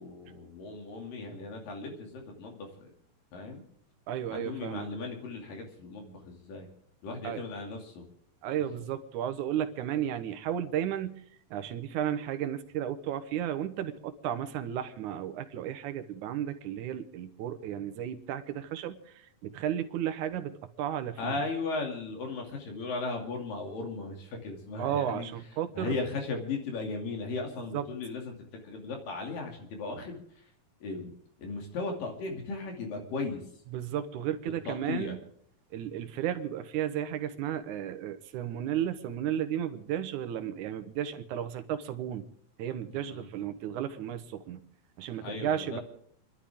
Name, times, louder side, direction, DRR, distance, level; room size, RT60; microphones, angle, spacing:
voice 1, 0.0-2.9 3.3-3.6 4.3-6.7 7.0-8.1 21.2-25.3 25.7-28.3 28.6-30.2 30.8-31.1 31.4-33.4 34.7-35.2 42.9-43.3 45.2-45.8, left 3 dB, 70° left, 2 dB, 4.3 m, -36 dB
voice 2, 4.1-4.9 7.2-7.4 8.4-11.2 11.5-21.3 24.8-26.0 27.7-27.8 33.7-35.2 35.7-42.3 42.6-44.6 45.0-45.8, right 10 dB, 70° right, 10 dB, 2.2 m, -33 dB
29.0 x 12.0 x 3.6 m, 0.66 s
omnidirectional pair, 4.2 m